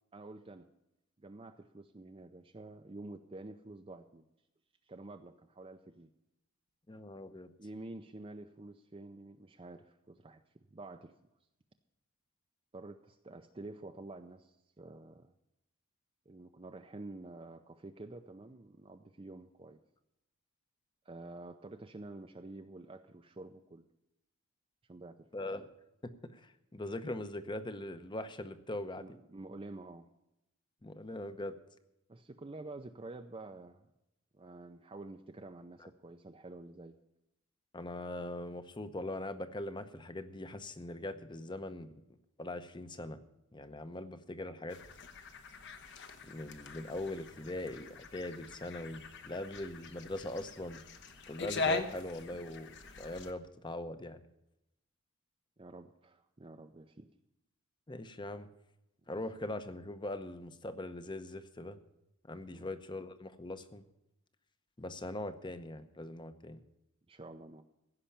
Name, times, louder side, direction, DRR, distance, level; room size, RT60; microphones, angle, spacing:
voice 1, 0.1-0.7 1.2-4.3 4.8-6.1 7.6-10.4 10.7-11.1 12.7-15.3 16.3-19.8 21.1-23.8 24.9-25.3 29.0-30.1 32.1-33.9 34.3-37.0 55.6-57.1 62.5-62.7 67.1-67.6, right 2 dB, 25° right, 5 dB, 0.5 m, -49 dB
voice 2, 6.9-7.5 25.3-25.7 26.0-29.1 30.8-31.5 35.8-35.9 37.7-41.9 42.4-43.2 43.5-44.8 46.2-50.8 51.3-54.2 57.9-58.5 59.1-61.8 62.3-63.8 64.8-66.6, left 1 dB, 20° left, 10 dB, 0.8 m, -41 dB
sound 1, 44.7-53.3, left 3 dB, 55° left, 1.0 m, -41 dB
16.0 x 5.7 x 9.9 m, 0.87 s
head